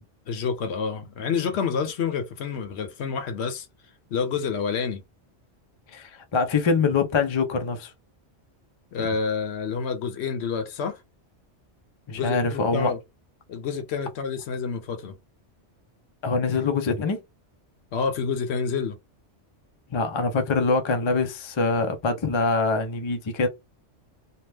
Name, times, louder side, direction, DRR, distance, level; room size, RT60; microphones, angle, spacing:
voice 1, 0.3-3.7 4.1-5.0 8.9-11.0 12.1-13.0 13.5-15.2 17.9-19.0, left 6 dB, 70° left, 0.9 m, -28 dB
voice 2, 5.9-7.9 12.1-12.9 16.2-17.2 19.9-23.5, left 4 dB, 45° left, 0.4 m, -24 dB
2.8 x 2.2 x 3.3 m
omnidirectional pair, 1.2 m